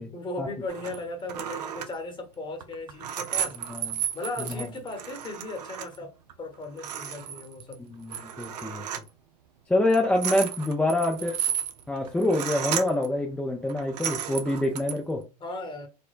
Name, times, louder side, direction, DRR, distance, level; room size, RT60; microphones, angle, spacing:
voice 1, 0.0-3.6 4.1-7.8 11.1-11.3 15.4-15.9, left 2 dB, 25° left, 1.0 m, -37 dB
sound 1, 0.7-1.0 1.3-1.9 2.6-6.0 6.3-6.4 6.6-7.7 8.1-9.1 9.8-13.1 13.7-15.0, right 9 dB, 80° right, 0.6 m, -33 dB
voice 2, 7.8-8.9 9.7-11.3 11.9-15.2, left 1 dB, 5° left, 0.5 m, -26 dB
4.3 x 2.1 x 2.4 m
hypercardioid pair, 100°, 21 cm